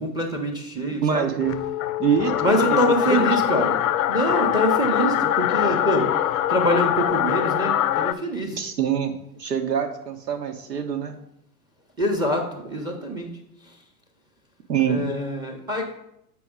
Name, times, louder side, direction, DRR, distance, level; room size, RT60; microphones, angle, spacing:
voice 1, 0.0-1.3 2.4-3.8 4.1-6.1 6.5-8.6 12.0-13.4 13.7-13.8 14.9-16.0, equal, 10° right, 4 dB, 0.8 m, -25 dB
voice 2, 0.9-1.6 2.0-2.8 3.1-3.4 8.6-11.2 14.7-15.1, right 7 dB, 85° right, 6 dB, 1.1 m, -25 dB
sound 1, 1.4-8.1, left 11 dB, 55° left, 0.5 m, -23 dB
7.6 x 4.7 x 3.7 m, 0.77 s
hypercardioid pair, 105°, 48 cm